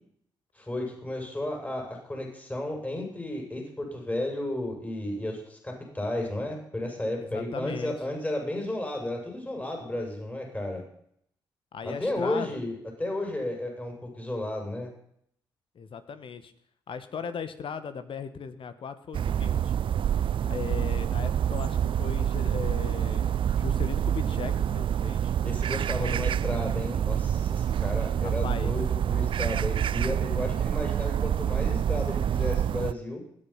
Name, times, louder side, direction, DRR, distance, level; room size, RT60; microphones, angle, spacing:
voice 1, 0.5-10.8 11.8-14.9 25.4-33.2, left 1 dB, 15° left, 1 dB, 7.2 m, -33 dB
voice 2, 7.2-8.0 11.7-12.6 15.7-16.5 16.9-19.7 20.4-25.4 26.0-26.2 28.2-28.7, left 6 dB, 55° left, 11 dB, 1.6 m, -38 dB
sound 1, 19.1-32.9, right 9 dB, 55° right, 0.5 m, -27 dB
20.5 x 9.0 x 5.9 m, 0.68 s
hypercardioid pair, 45°, 11 cm